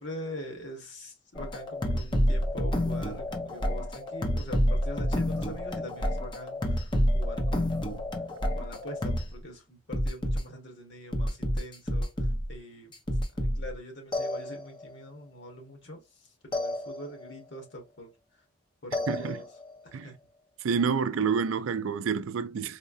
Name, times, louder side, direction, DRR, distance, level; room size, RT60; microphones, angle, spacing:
voice 1, 0.0-8.0 8.6-12.1 12.5-12.9 13.3-18.1 18.8-19.4 19.8-20.1, left 1 dB, 60° left, 1.4 m, -43 dB
sound 1, 1.4-9.3 9.9-10.4 11.1-12.5 12.9-13.7 14.1-14.9 16.5-17.3 18.9-19.7, equal, 25° left, 0.6 m, -29 dB
voice 2, 19.1-19.4 19.9-20.1 20.6-22.8, right 6 dB, 90° right, 0.4 m, -28 dB
4.2 x 2.1 x 2.5 m
head